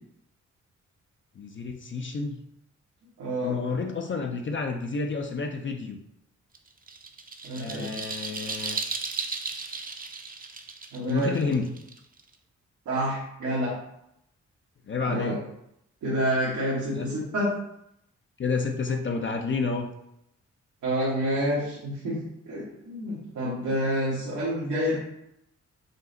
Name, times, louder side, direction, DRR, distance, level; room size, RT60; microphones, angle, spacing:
voice 1, 1.4-2.4 3.4-6.0 7.5-8.8 11.1-11.7 14.9-15.4 17.0-17.1 18.4-19.9, left 4 dB, 40° left, 3 dB, 0.5 m, -30 dB
voice 2, 3.2-3.6 7.4-7.9 10.9-11.7 12.8-13.7 15.0-15.4 16.0-17.5 20.8-25.0, equal, 90° right, -9 dB, 1.3 m, -28 dB
sound 1, 6.5-12.3, right 4 dB, 30° right, 0.6 m, -35 dB
5.1 x 2.1 x 3.8 m, 0.79 s
cardioid pair, 55°, 30 cm